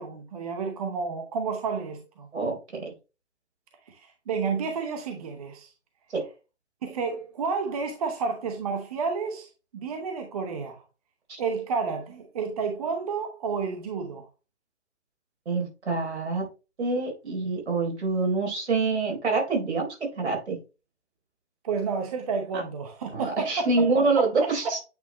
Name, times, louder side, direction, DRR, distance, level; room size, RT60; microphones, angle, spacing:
voice 1, 0.0-2.3 3.9-5.7 6.8-10.8 11.4-14.2 21.6-23.7, right 5 dB, 30° right, 0.9 m, -31 dB
voice 2, 2.3-2.9 6.1-6.3 11.3-11.4 15.5-16.5 16.8-20.6 22.5-22.6 23.1-24.8, right 3 dB, 70° right, 4.0 m, -26 dB
8.7 x 4.1 x 2.9 m
hypercardioid pair, 155°, 35 cm